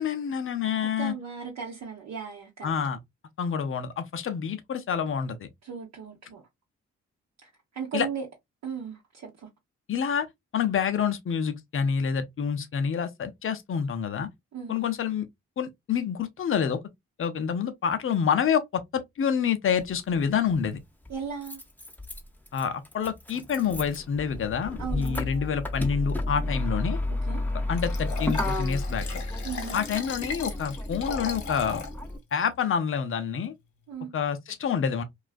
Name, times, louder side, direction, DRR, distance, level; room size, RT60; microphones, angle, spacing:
voice 1, 0.0-1.1 2.6-3.0 3.4-5.5 7.9-8.1 9.9-10.3 10.5-14.3 14.7-15.3 15.6-16.8 17.2-20.8 22.5-27.0 27.7-29.2 29.7-31.8 32.3-33.5 34.1-35.0, left 7 dB, 40° left, 0.6 m, -27 dB
voice 2, 1.0-2.7 5.6-6.4 7.4-8.3 8.6-9.5 14.5-14.8 21.1-21.6 24.8-25.2 27.3-27.4 29.4-29.8 33.9-34.1, right 6 dB, 60° right, 0.8 m, -36 dB
Motor vehicle (road), 19.8-19.9 21.0-32.2, left 2 dB, 5° left, 0.7 m, -32 dB
Liquid, 27.8-31.9 32.4-32.5, left 5 dB, 65° left, 0.9 m, -37 dB
2.4 x 2.3 x 2.3 m
hypercardioid pair, 45°, 31 cm